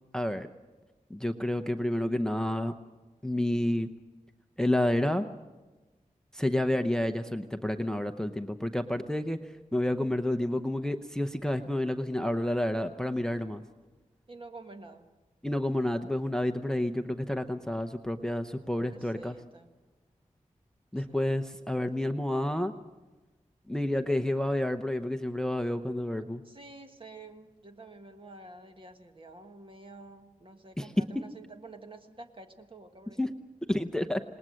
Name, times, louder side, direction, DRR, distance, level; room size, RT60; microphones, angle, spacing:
voice 1, 0.1-0.5 1.1-2.7 3.2-3.9 4.6-5.3 6.3-13.6 15.4-19.4 20.9-22.7 23.7-26.4 30.8-30.9 33.2-33.3 33.7-34.2, left 1 dB, 5° left, 6 dB, 0.7 m, -29 dB
voice 2, 14.3-15.1 18.7-19.7 21.0-21.4 26.4-33.2, right 2 dB, 40° right, 5 dB, 1.6 m, -49 dB
27.0 x 19.5 x 6.4 m, 1.2 s
wide cardioid pair, 110°, 14 cm